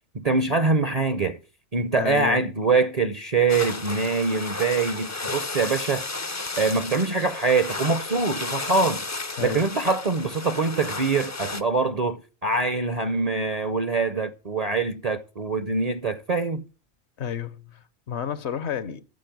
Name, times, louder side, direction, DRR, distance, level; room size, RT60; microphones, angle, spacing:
voice 1, 0.1-1.4 1.7-6.1 6.6-9.0 9.4-16.6, right 4 dB, 40° right, 0.6 m, -24 dB
voice 2, 1.9-2.4 9.4-9.7 17.2-19.0, left 8 dB, 65° left, 1.0 m, -31 dB
sound 1, 3.5-11.6, left 3 dB, 25° left, 0.3 m, -33 dB
9.2 x 7.4 x 9.2 m
omnidirectional pair, 1.3 m